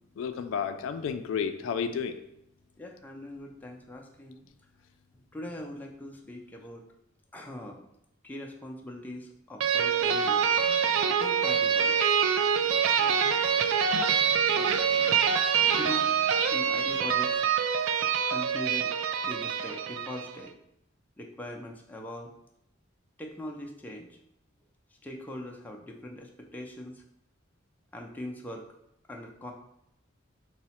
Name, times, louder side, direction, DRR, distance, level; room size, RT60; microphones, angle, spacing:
voice 1, 0.2-2.2, left 6 dB, 70° left, 0.3 m, -31 dB
voice 2, 2.8-4.5 5.3-6.8 7.3-7.9 8.2-10.5 11.2-12.2 12.6-13.6 14.5-14.8 15.2-15.3 15.8-16.1 16.5-17.5 18.2-18.9 19.2-20.5 21.2-22.3 23.2-24.2 25.0-27.0 27.9-28.6 29.1-29.5, left 1 dB, 10° left, 0.4 m, -41 dB
sound 1, 9.6-20.3, right 7 dB, 70° right, 0.3 m, -25 dB
4.7 x 2.0 x 4.2 m
head